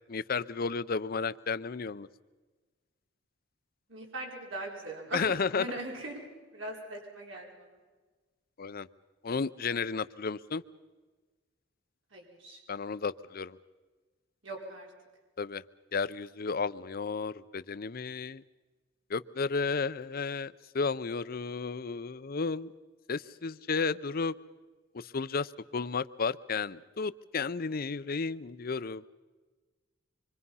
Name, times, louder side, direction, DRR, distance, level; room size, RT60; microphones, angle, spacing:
voice 1, 0.1-2.1 5.1-5.7 8.6-8.9 9.2-10.6 12.7-13.6 15.4-15.6 15.9-18.4 19.1-22.7 23.1-24.3 24.9-29.0, left 5 dB, 50° left, 16 dB, 0.6 m, -33 dB
voice 2, 3.9-6.3 6.5-7.5 12.1-12.6 14.4-14.9, right 2 dB, 90° right, -2 dB, 4.7 m, -40 dB
26.5 x 24.0 x 5.6 m, 1.3 s
head